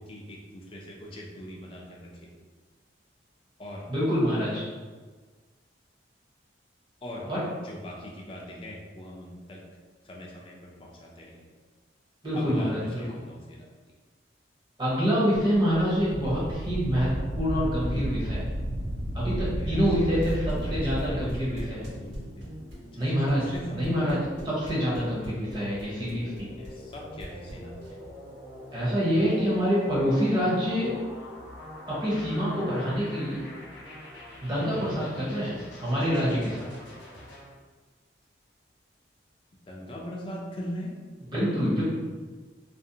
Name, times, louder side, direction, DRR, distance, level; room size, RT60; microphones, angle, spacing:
voice 1, 0.0-2.3 3.6-3.9 7.0-7.3 7.6-9.6 10.0-11.5 12.3-13.7 19.5-22.5 22.9-24.5 26.6-27.9 34.5-35.4 39.7-40.9, equal, 25° left, -2 dB, 0.3 m, -42 dB
voice 2, 3.9-4.6 7.3-7.4 12.2-13.0 14.8-18.4 19.1-21.8 23.0-23.4 23.7-24.2 24.4-26.5 28.7-30.9 31.9-33.4 34.4-36.6 41.3-41.8, equal, 25° right, -7 dB, 0.7 m, -26 dB
Wind, 15.4-21.7, equal, 60° right, 0.3 m, -32 dB
sound 1, 19.1-37.4, left 1 dB, 70° left, 0.7 m, -46 dB
sound 2, 20.2-28.1, equal, 80° right, 0.9 m, -43 dB
2.5 x 2.0 x 2.7 m, 1.4 s
head